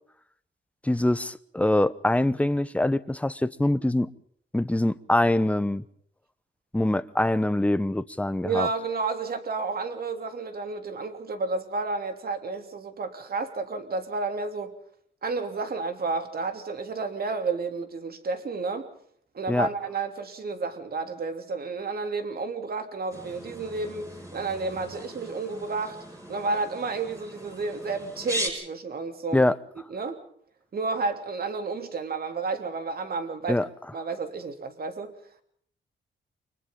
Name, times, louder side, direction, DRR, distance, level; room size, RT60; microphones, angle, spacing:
voice 1, 0.8-4.1 4.5-5.8 6.7-8.7 19.5-19.7 29.3-29.6 33.5-33.7, left 1 dB, 5° left, 0.9 m, -24 dB
voice 2, 8.4-14.7 15.2-18.9 19.3-26.0 26.3-29.4 29.9-30.2 30.7-33.6 33.9-35.1, right 4 dB, 50° right, 3.2 m, -31 dB
sound 1, 23.1-28.5, equal, 15° right, 6.5 m, -38 dB
29.5 x 25.0 x 3.9 m
cardioid pair, 115°, 21 cm